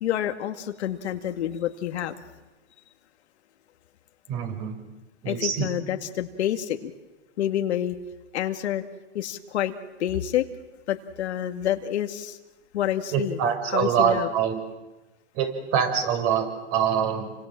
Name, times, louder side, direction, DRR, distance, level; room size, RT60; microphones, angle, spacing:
voice 1, 0.0-2.2 5.3-6.9 7.4-8.0 8.3-8.8 9.1-10.5 10.9-12.4 12.7-13.4 13.7-14.3, left 11 dB, 65° left, 6 dB, 2.2 m, -28 dB
voice 2, 4.3-4.8 5.2-5.7 13.1-14.6 15.4-17.5, right 8 dB, 35° right, 6 dB, 6.2 m, -25 dB
30.0 x 25.5 x 7.6 m, 1.1 s
hypercardioid pair, 145°, 36 cm